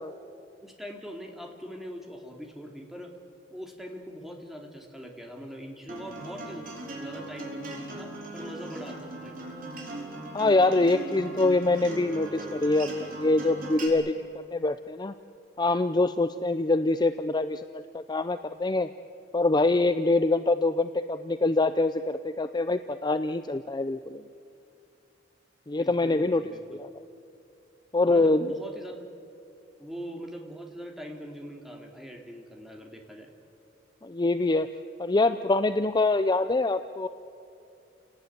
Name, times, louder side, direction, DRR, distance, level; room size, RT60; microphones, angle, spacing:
voice 1, 0.6-3.1 3.5-9.4 25.8-26.8 28.1-29.1 29.8-33.3, equal, ahead, 1 dB, 2.9 m, -42 dB
Acoustic guitar, 5.9-13.9, right 2 dB, 50° right, 5.3 m, -39 dB
voice 2, 10.3-14.2 14.5-15.1 15.6-18.9 19.3-24.2 25.7-26.4 26.7-26.9 27.9-28.5 34.0-34.7 35.0-37.1, left 2 dB, 25° left, 10 dB, 0.5 m, -25 dB
29.5 x 18.5 x 9.5 m, 2.6 s
head